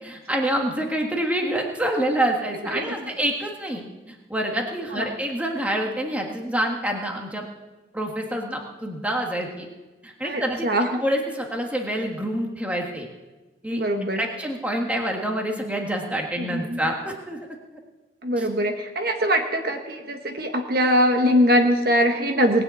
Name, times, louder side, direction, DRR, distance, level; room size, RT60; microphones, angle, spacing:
voice 1, 0.0-7.5 7.9-9.7 10.0-10.7 11.0-13.1 13.6-13.8 14.1-17.5 18.4-18.5, right 1 dB, 5° right, 1 dB, 1.5 m, -27 dB
voice 2, 10.2-10.9 13.7-14.2 16.4-16.8 18.2-22.6, equal, 50° right, 4 dB, 1.3 m, -22 dB
20.0 x 6.8 x 8.2 m, 1.2 s
head